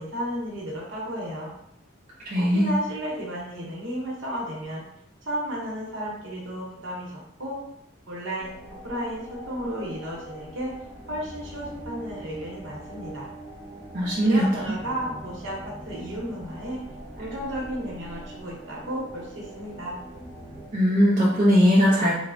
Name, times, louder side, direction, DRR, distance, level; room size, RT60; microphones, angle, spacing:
voice 1, 0.0-1.5 2.4-4.8 5.2-7.6 8.1-8.5 8.8-10.7 11.1-13.3 14.2-15.6 15.8-16.8 17.2-20.0, equal, 70° right, -3 dB, 0.8 m, -33 dB
voice 2, 2.2-2.8 13.9-14.6 20.7-22.2, equal, 40° right, -5 dB, 0.4 m, -20 dB
sound 1, 8.4-20.7, right 1 dB, 10° left, 0.6 m, -42 dB
3.1 x 2.0 x 2.4 m, 0.78 s
head